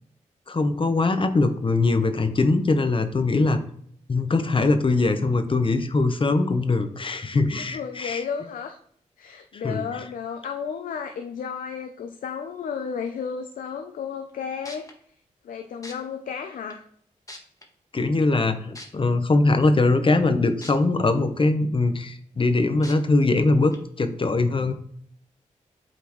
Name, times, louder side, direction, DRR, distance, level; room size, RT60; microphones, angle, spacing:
voice 1, 0.5-3.6 4.1-8.2 9.5-9.8 17.9-24.7, left 3 dB, 40° left, 9 dB, 0.8 m, -22 dB
voice 2, 7.6-8.8 9.2-14.9 15.4-16.8, left 6 dB, 85° left, 6 dB, 0.5 m, -33 dB
sound 1, 14.3-14.4 14.6-14.9 15.8-15.9 16.7-16.8 17.3-17.6 18.7-18.9 20.6-20.7 21.2-21.3 22.8-22.9 23.7-23.8, left 1 dB, 25° left, 1.3 m, -40 dB
8.4 x 4.3 x 3.1 m, 0.63 s
cardioid pair, 55°, 14 cm